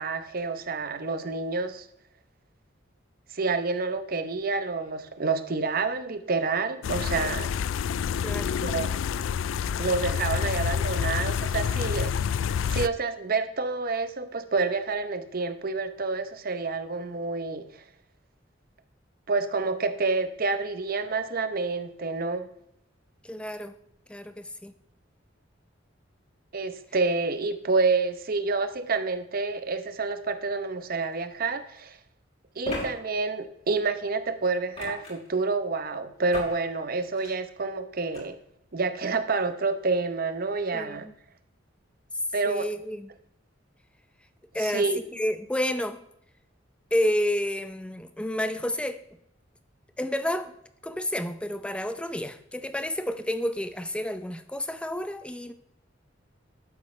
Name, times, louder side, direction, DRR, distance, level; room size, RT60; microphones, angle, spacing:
voice 1, 0.0-1.9 3.3-7.5 8.6-8.9 9.8-12.1 12.7-17.8 19.3-22.5 26.5-32.0 32.6-38.4 38.7-41.0 42.3-42.7 44.6-45.0, right 3 dB, 50° right, 0.8 m, -28 dB
sound 1, 6.8-12.9, left 7 dB, 90° left, 0.3 m, -28 dB
voice 2, 8.2-8.6 23.2-23.7 24.1-24.7 40.7-41.1 42.4-43.1 44.5-44.9 45.1-46.0 46.9-49.0 50.0-50.6 50.8-55.5, left 1 dB, 5° left, 0.6 m, -30 dB
sound 2, 31.1-31.2 32.6-32.9 34.7-35.3 36.3-36.6 37.0-37.3 38.1-38.2, left 2 dB, 35° left, 4.1 m, -34 dB
12.0 x 8.3 x 3.2 m
head